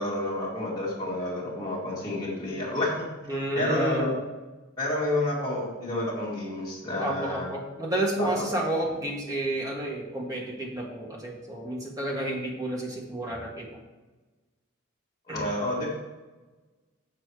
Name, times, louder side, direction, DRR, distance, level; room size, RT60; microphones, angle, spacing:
voice 1, 0.0-3.1 3.5-4.1 4.8-7.5 8.2-8.5 15.3-15.9, left 1 dB, 15° left, -9 dB, 2.2 m, -29 dB
voice 2, 3.3-4.2 7.0-13.7 15.3-15.5, right 1 dB, 15° right, -2 dB, 1.4 m, -30 dB
7.5 x 6.6 x 4.8 m, 1.2 s
head